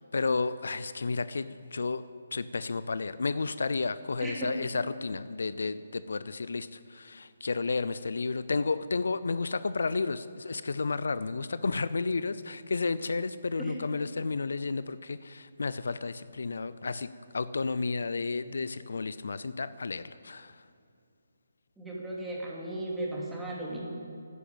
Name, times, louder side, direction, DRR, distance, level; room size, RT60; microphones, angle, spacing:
voice 1, 0.1-2.0 2.3-17.1 17.3-20.5, left 4 dB, 70° left, 14 dB, 0.5 m, -32 dB
voice 2, 4.2-4.6 13.6-13.8 21.8-23.8, right 1 dB, 5° right, -5 dB, 2.9 m, -36 dB
11.5 x 10.0 x 8.7 m, 2.6 s
figure-of-eight pair, 150°, 0 cm